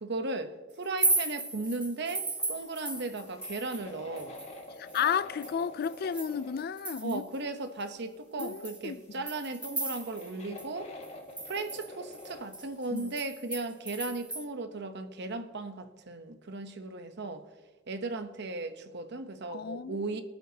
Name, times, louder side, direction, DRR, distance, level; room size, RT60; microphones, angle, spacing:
voice 1, 0.0-4.4 7.0-10.9 11.5-17.5 17.9-20.2, right 3 dB, 60° right, 0.9 m, -36 dB
sound 1, 0.8-3.9 4.2-7.4 7.8-7.9 8.4-10.3 10.6-10.7 11.0-14.4, right 2 dB, 5° right, 0.8 m, -35 dB
sound 2, 2.4-6.7 8.8-8.9 9.1-12.6 13.0-13.1, left 2 dB, 35° left, 1.8 m, -48 dB
voice 2, 4.8-7.2 8.4-9.0 12.9-13.2 19.5-20.2, left 7 dB, 50° left, 0.4 m, -33 dB
23.0 x 9.0 x 2.8 m
head